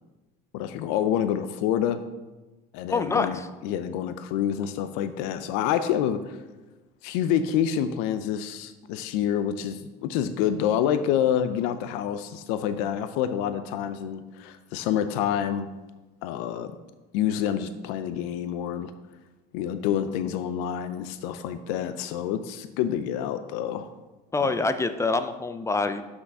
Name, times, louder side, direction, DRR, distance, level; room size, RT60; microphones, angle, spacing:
voice 1, 0.5-2.0 2.7-6.4 7.0-15.7 16.2-16.7 17.1-18.9 19.5-23.9 24.4-24.5, left 9 dB, 75° left, 10 dB, 0.6 m, -27 dB
voice 2, 2.9-3.5 24.3-26.0, left 3 dB, 15° left, 10 dB, 0.5 m, -26 dB
6.3 x 5.9 x 5.4 m, 1.1 s
supercardioid pair, 100°, 21 cm